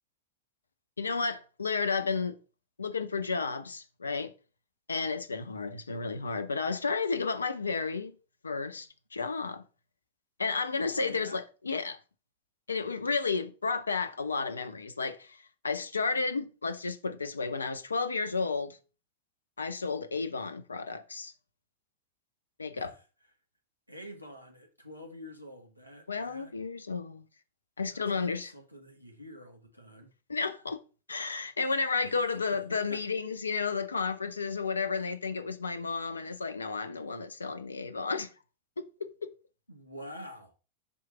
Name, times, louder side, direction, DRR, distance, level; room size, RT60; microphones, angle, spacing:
voice 1, 1.0-2.4 2.8-4.3 4.9-8.1 8.4-9.6 10.4-12.0 12.7-18.8 19.6-21.3 22.6-22.9 26.1-27.2 27.8-28.5 30.3-30.8 31.1-38.3 38.8-39.3, left 4 dB, 75° left, 0.5 m, -32 dB
voice 2, 10.9-11.4 22.6-23.0 23.9-26.5 27.9-30.1 32.0-32.2 32.5-33.0 39.7-40.5, equal, 90° right, 1.3 m, -47 dB
5.3 x 3.2 x 5.5 m
figure-of-eight pair, 90°, 0 cm